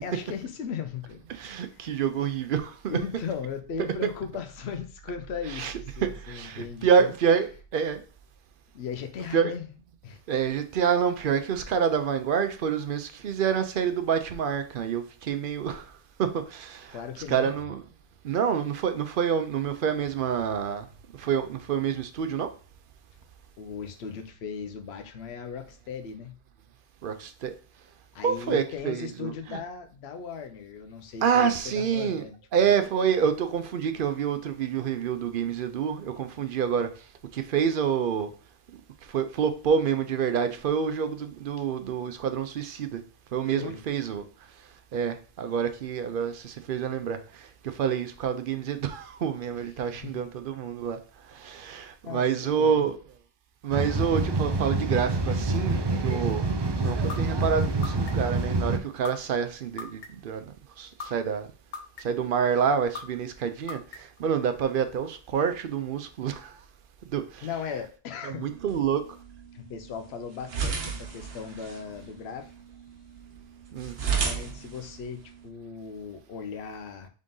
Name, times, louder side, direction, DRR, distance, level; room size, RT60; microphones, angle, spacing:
voice 1, 0.0-1.2 1.5-2.2 2.9-7.1 8.7-9.7 10.0-10.2 16.9-17.7 23.6-26.3 28.1-31.5 31.9-32.3 43.5-43.8 49.9-50.2 52.0-52.9 67.4-68.5 69.5-72.5 74.0-77.1, left 6 dB, 90° left, 0.9 m, -37 dB
voice 2, 1.3-3.0 5.5-5.7 6.0-8.0 9.3-9.5 10.3-15.9 16.2-17.0 17.3-17.8 18.2-20.9 21.2-22.5 27.0-27.5 28.2-29.6 31.2-32.2 32.5-36.9 37.3-38.3 39.0-43.0 43.3-44.2 44.9-51.0 51.3-53.0 53.6-56.4 56.8-60.4 60.8-61.5 62.0-66.6 67.1-67.5 68.2-69.0 73.7-74.0, right 7 dB, 65° right, 0.7 m, -27 dB
sound 1, 53.7-58.8, right 2 dB, 40° right, 0.3 m, -27 dB
sound 2, 57.1-57.2 57.8-58.3 59.0-59.1 59.8-60.3 61.0-61.1 61.7-62.2 62.9-63.0 63.7-64.2, left 5 dB, 55° left, 0.7 m, -37 dB
sound 3, 68.4-75.5, right 6 dB, 80° right, 1.0 m, -34 dB
3.8 x 3.6 x 3.7 m
omnidirectional pair, 1.0 m